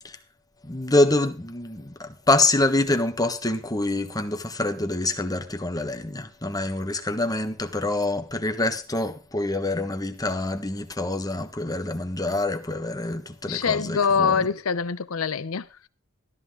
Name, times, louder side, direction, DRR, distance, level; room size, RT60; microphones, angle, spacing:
voice 1, 0.6-14.5, left 2 dB, 20° left, 1.4 m, -26 dB
voice 2, 13.5-15.9, left 6 dB, 80° left, 0.7 m, -24 dB
13.5 x 13.0 x 3.7 m
head